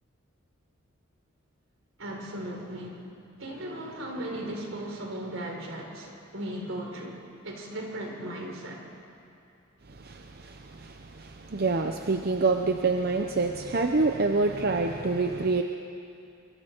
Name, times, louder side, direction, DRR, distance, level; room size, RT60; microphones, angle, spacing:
voice 1, 2.0-3.0 3.4-8.8, right 1 dB, 75° right, 1 dB, 4.0 m, -37 dB
voice 2, 9.9-15.6, right 3 dB, 50° right, 4 dB, 0.8 m, -27 dB
25.5 x 23.5 x 4.6 m, 2.6 s
head